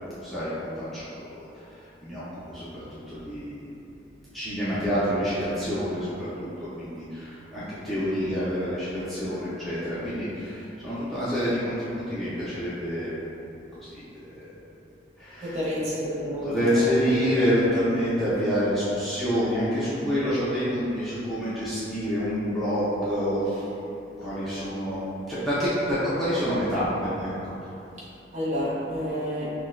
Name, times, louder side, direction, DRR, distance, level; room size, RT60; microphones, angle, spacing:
voice 1, 0.2-1.4 2.0-2.2 2.5-3.7 4.3-6.5 6.8-13.1 13.8-14.5 15.2-15.6 16.4-23.6 24.2-25.0 25.3-27.5, equal, ahead, -13 dB, 0.6 m, -27 dB
voice 2, 15.4-17.1 28.3-29.5, equal, 35° right, -9 dB, 1.0 m, -30 dB
6.1 x 2.2 x 2.4 m, 2.8 s
head